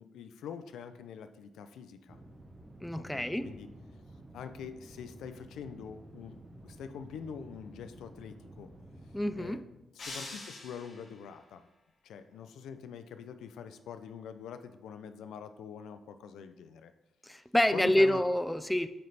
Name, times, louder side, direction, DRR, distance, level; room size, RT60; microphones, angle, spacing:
voice 1, 0.0-2.2 3.0-3.7 4.3-6.4 6.6-8.7 9.4-11.7 12.0-16.9 17.7-18.2, left 7 dB, 85° left, 9 dB, 0.4 m, -44 dB
sound 1, 2.1-9.7, right 1 dB, 20° right, 0.8 m, -52 dB
voice 2, 2.8-3.5 9.1-9.6 17.2-18.9, left 1 dB, 5° left, 11 dB, 0.4 m, -27 dB
sound 2, 10.0-11.2, left 2 dB, 55° left, 2.0 m, -44 dB
8.5 x 3.2 x 4.0 m, 0.96 s
cardioid pair, 70°, 0 cm